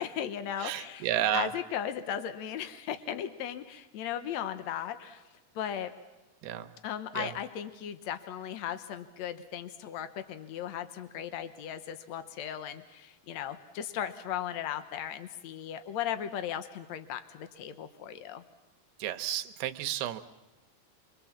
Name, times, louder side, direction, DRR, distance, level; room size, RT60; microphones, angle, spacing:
voice 1, 0.0-5.2 5.5-5.9 6.8-18.4, left 9 dB, 90° left, 10 dB, 1.5 m, -37 dB
voice 2, 0.6-1.5 6.4-6.7 7.1-7.3 19.0-20.2, right 11 dB, 80° right, 8 dB, 2.9 m, -31 dB
27.5 x 24.0 x 7.3 m, 1.1 s
omnidirectional pair, 4.6 m